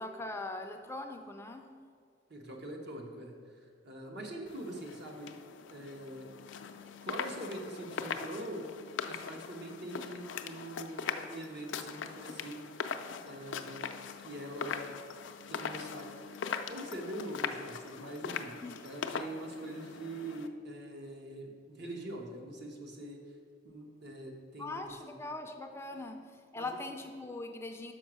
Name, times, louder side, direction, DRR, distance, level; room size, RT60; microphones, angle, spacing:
voice 1, 0.0-1.7 18.6-18.8 24.6-27.9, left 2 dB, 15° left, 5 dB, 0.4 m, -41 dB
voice 2, 2.3-5.4 5.7-6.3 7.0-8.7 9.0-12.7 13.3-13.9 14.2-14.9 15.5-16.3 16.7-23.2 23.6-25.1 26.5-26.8, right 1 dB, 65° right, 1 dB, 1.2 m, -43 dB
sound 1, 4.5-20.5, left 6 dB, 80° left, 0.4 m, -41 dB
6.2 x 5.0 x 6.1 m, 2.2 s
head